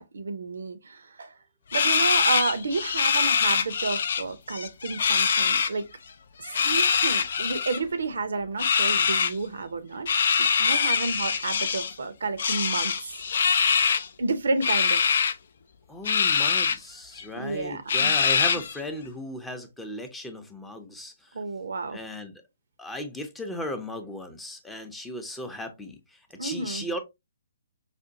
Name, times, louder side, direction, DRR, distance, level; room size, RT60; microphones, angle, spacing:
voice 1, 0.0-1.3 1.7-5.9 6.4-10.1 10.4-13.1 14.2-15.0 17.3-18.2 21.3-22.0 26.4-26.8, right 3 dB, 70° right, 0.6 m, -31 dB
sound 1, 1.7-4.2 4.5-5.7 6.4-7.8 8.6-9.3 10.1-11.9 12.4-14.1 14.6-15.3 16.1-16.8 17.2-17.3 17.9-18.8, left 6 dB, 60° left, 0.4 m, -23 dB
voice 2, 15.9-21.4 21.9-22.4 22.8-27.0, left 1 dB, 5° left, 0.6 m, -36 dB
4.9 x 2.2 x 2.6 m
figure-of-eight pair, 130°, 0 cm